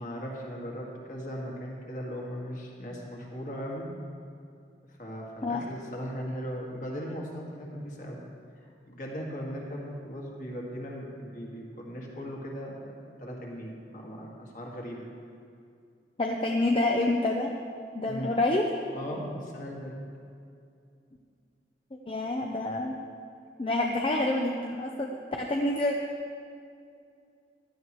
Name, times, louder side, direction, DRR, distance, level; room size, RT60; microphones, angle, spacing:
voice 1, 0.0-3.9 4.9-8.2 8.6-12.8 13.2-15.1 18.1-18.3 18.9-19.9, equal, 45° left, -2 dB, 2.0 m, -38 dB
voice 2, 16.2-17.5 17.9-18.6 22.1-23.0 23.6-25.9, left 2 dB, 30° left, 1 dB, 0.7 m, -27 dB
16.5 x 11.5 x 3.2 m, 2.4 s
head